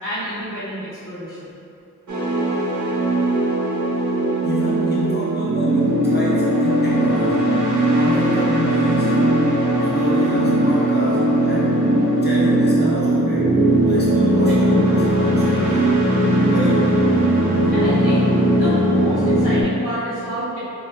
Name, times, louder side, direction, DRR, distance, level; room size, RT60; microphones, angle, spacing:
voice 1, 0.0-1.5 14.5-14.6 17.7-20.6, equal, 65° left, -16 dB, 1.3 m, -28 dB
sound 1, 2.1-19.6, right 1 dB, 60° right, 0.7 m, -18 dB
voice 2, 4.4-7.6 7.9-9.2 9.8-16.0 16.5-17.1, equal, 30° left, -8 dB, 1.0 m, -28 dB
3.4 x 2.8 x 2.8 m, 2.6 s
wide cardioid pair, 40°, 33 cm